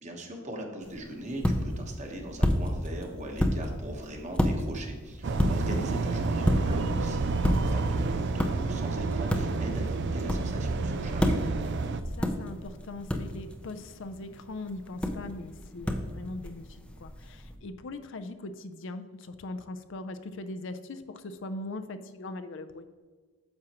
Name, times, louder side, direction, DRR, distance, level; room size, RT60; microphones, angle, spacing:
voice 1, 0.0-11.3, right 1 dB, 30° right, 2 dB, 1.1 m, -40 dB
sound 1, 0.8-17.6, equal, 5° left, 0.5 m, -32 dB
sound 2, 5.2-12.0, right 3 dB, 50° right, 0.4 m, -30 dB
voice 2, 5.6-6.0 12.0-22.8, left 2 dB, 55° left, 10 dB, 0.5 m, -40 dB
9.6 x 7.3 x 3.0 m, 1.5 s
head